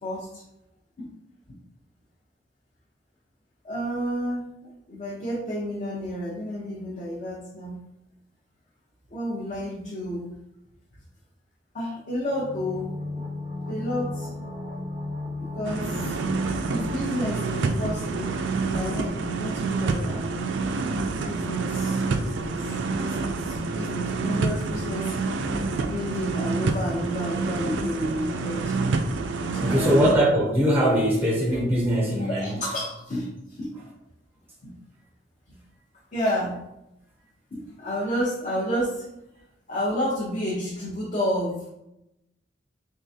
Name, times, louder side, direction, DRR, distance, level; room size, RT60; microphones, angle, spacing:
voice 1, 0.0-0.4 1.0-1.1 1.5-1.6 3.6-7.8 9.1-10.4 11.7-12.9 13.6-14.3 15.4-16.2 16.7-20.3 21.2-22.7 23.0-25.2 25.9-28.8 29.5-30.1 31.9-33.7 34.6-34.7 35.5-35.6 36.1-36.6 37.5-39.0 39.7-41.7, equal, 45° left, -5 dB, 0.7 m, -31 dB
sound 1, 12.3-18.0 18.2-18.3, left 2 dB, 85° left, 1.2 m, -35 dB
sound 2, 15.6-30.1, right 3 dB, 75° right, 0.4 m, -28 dB
voice 2, 29.6-32.6, equal, 10° right, -2 dB, 0.5 m, -21 dB
3.7 x 3.2 x 2.7 m, 0.86 s
head